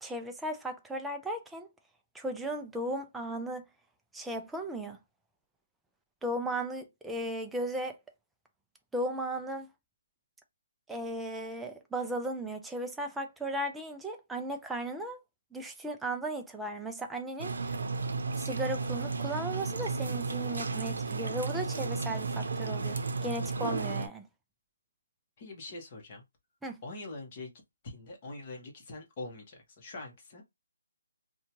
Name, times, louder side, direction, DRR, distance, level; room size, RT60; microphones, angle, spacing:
voice 1, 0.0-1.7 2.1-3.6 4.1-5.0 6.2-8.0 8.9-9.7 10.9-15.2 15.5-17.5 18.4-23.0 23.2-24.3 26.6-26.8, right 1 dB, 5° right, 0.3 m, -36 dB
sound 1, 17.4-24.1, right 4 dB, 70° right, 0.6 m, -33 dB
voice 2, 25.4-26.2 26.8-27.5 27.8-30.4, left 2 dB, 25° left, 1.0 m, -43 dB
2.7 x 2.2 x 2.9 m
hypercardioid pair, 175°, 0 cm